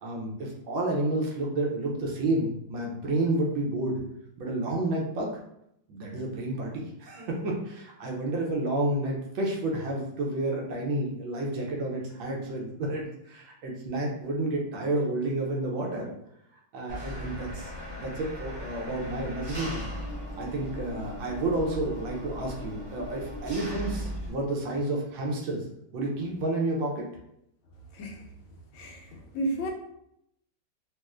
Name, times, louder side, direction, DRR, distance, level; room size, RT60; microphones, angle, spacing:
voice 1, 0.0-4.0 4.4-5.4 5.9-16.1 16.7-19.9 20.3-25.6 25.9-27.0, right 2 dB, 75° right, -1 dB, 1.4 m, -30 dB
Engine, 16.9-24.3, equal, 30° right, 0.6 m, -38 dB
voice 2, 27.9-28.3 28.7-29.7, right 1 dB, 80° left, 0 dB, 1.5 m, -33 dB
4.2 x 2.5 x 2.3 m, 0.77 s
omnidirectional pair, 2.3 m